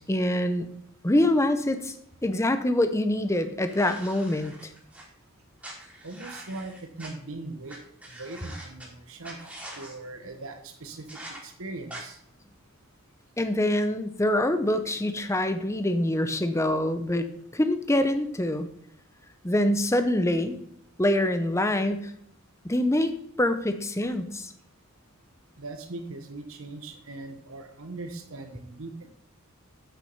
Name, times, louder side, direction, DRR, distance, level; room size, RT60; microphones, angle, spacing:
voice 1, 0.1-0.7 1.0-1.9 2.2-4.5 13.4-17.3 17.5-18.7 19.4-20.6 21.0-22.1 22.6-23.1 23.4-24.5, left 1 dB, 15° left, 9 dB, 0.7 m, -25 dB
sound 1, 3.7-5.0 5.6-7.1 7.7-7.8 8.0-8.9 9.2-9.9 11.1-11.4 11.9-12.0, right 1 dB, 5° right, 2.8 m, -43 dB
voice 2, 6.0-9.4 9.7-12.2 25.6-29.1, right 2 dB, 80° right, 5 dB, 1.1 m, -40 dB
8.7 x 6.2 x 5.5 m, 0.70 s
head